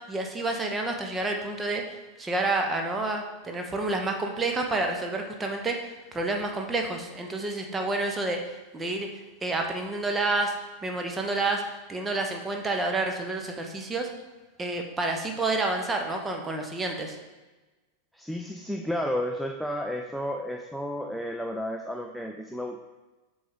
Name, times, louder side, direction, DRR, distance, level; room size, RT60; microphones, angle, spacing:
voice 1, 0.1-9.1 9.4-10.5 10.8-14.1 14.6-17.2, right 2 dB, 15° right, 3 dB, 1.0 m, -29 dB
voice 2, 18.1-22.8, equal, ahead, 2 dB, 0.4 m, -32 dB
6.7 x 3.6 x 5.1 m, 1.2 s
figure-of-eight pair, 90°, 0 cm